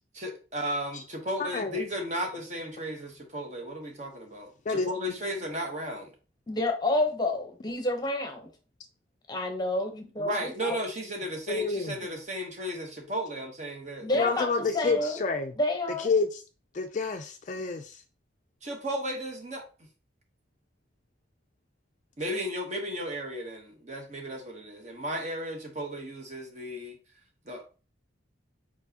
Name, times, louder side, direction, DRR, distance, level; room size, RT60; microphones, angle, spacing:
voice 1, 0.1-6.1 10.2-15.1 18.6-19.6 22.2-27.0 27.4-27.6, equal, 35° right, 1.0 m, -35 dB
voice 2, 1.4-1.7 4.7-4.9 11.5-11.9 14.1-15.5 16.0-16.4 16.7-18.0, left 4 dB, 40° left, 0.4 m, -28 dB
voice 3, 6.5-8.5 9.3-10.3 10.6-10.8 14.0-15.2 15.6-16.1, left 2 dB, 20° left, 0.8 m, -29 dB
4.5 x 4.2 x 2.8 m
head